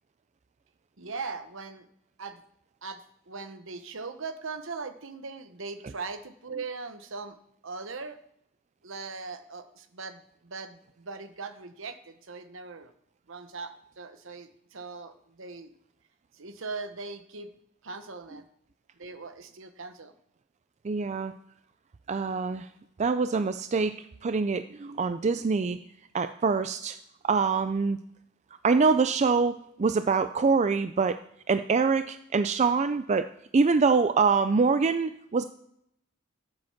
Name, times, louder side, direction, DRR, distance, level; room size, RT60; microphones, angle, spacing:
voice 1, 1.0-1.8 2.2-2.4 2.8-7.4 7.6-8.2 8.8-12.9 13.3-15.7 16.3-17.5 17.8-18.4 19.0-20.1, right 4 dB, 65° right, 9 dB, 1.1 m, -40 dB
voice 2, 20.8-21.3 22.1-22.7 23.0-25.8 26.1-27.0 27.2-28.0 28.6-31.2 31.5-33.3 33.5-35.4, right 4 dB, 35° right, 10 dB, 0.4 m, -25 dB
13.0 x 7.7 x 5.8 m, 0.74 s
head